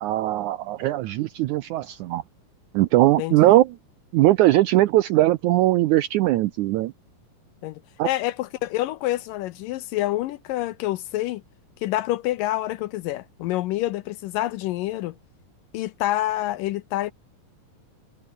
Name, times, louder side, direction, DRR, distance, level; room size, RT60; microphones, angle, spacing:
voice 1, 0.0-2.2 2.7-3.7 4.1-6.9 8.0-8.1, right 16 dB, 85° right, 1.7 m, -20 dB
voice 2, 3.2-3.6 7.6-11.4 11.8-15.2 15.7-17.1, left 15 dB, 75° left, 2.2 m, -27 dB
omnidirectional pair, 4.2 m